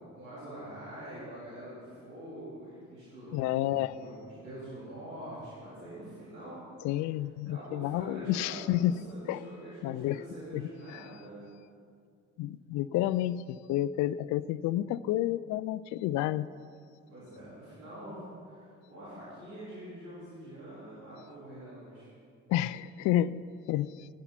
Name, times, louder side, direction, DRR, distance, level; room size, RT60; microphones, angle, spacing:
voice 1, 0.0-6.7 7.5-11.5 17.1-22.1, right 1 dB, 75° right, -11 dB, 3.9 m, -45 dB
voice 2, 3.3-3.9 6.8-8.9 9.3-9.4 9.8-10.2 10.5-11.0 12.4-16.5 22.5-24.1, left 13 dB, 45° left, 17 dB, 0.4 m, -30 dB
16.0 x 11.0 x 4.2 m, 2.3 s
figure-of-eight pair, 40°, 40 cm